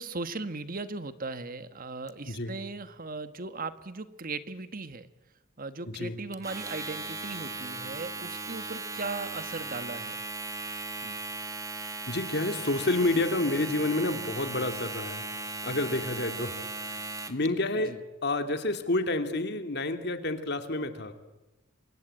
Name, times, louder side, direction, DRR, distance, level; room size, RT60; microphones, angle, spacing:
voice 1, 0.0-5.1 5.6-10.2 11.0-11.2 17.9-18.0, right 3 dB, 45° right, 12 dB, 1.2 m, -38 dB
voice 2, 2.3-2.6 5.9-6.2 11.3-11.4 12.1-15.2 15.6-18.0 18.2-21.2, left 2 dB, 55° left, 8 dB, 2.4 m, -29 dB
Domestic sounds home sounds, 6.3-17.5, right 3 dB, 15° right, 1.7 m, -37 dB
27.5 x 24.0 x 8.8 m, 1.0 s
head